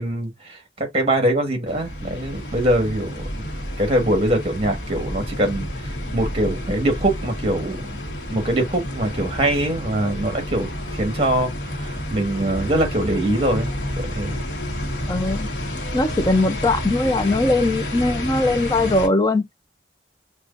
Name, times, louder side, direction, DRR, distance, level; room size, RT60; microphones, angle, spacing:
voice 1, 0.0-3.4 3.8-7.8 8.3-10.7 10.9-13.7 14.1-14.4, right 1 dB, 35° right, 1.6 m, -23 dB
sound 1, 1.7-19.1, left 1 dB, 85° left, 1.1 m, -30 dB
voice 2, 15.1-15.5 15.9-19.4, left 2 dB, 20° left, 0.5 m, -20 dB
6.0 x 2.4 x 2.5 m
head